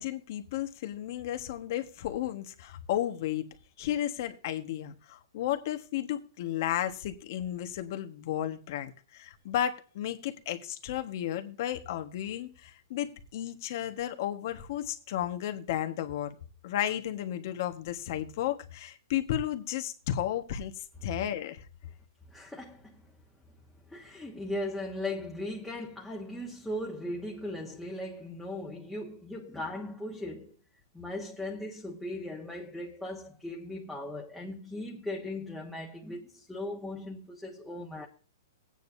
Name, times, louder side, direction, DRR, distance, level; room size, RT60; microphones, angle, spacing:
voice 1, 0.0-3.5 3.8-16.3 16.6-20.7 21.0-21.6, left 11 dB, 50° left, 1.5 m, -33 dB
voice 2, 22.3-23.1 23.9-30.5 30.9-38.1, left 1 dB, 5° left, 1.4 m, -38 dB
16.5 x 9.2 x 2.8 m
hypercardioid pair, 150°, 2 cm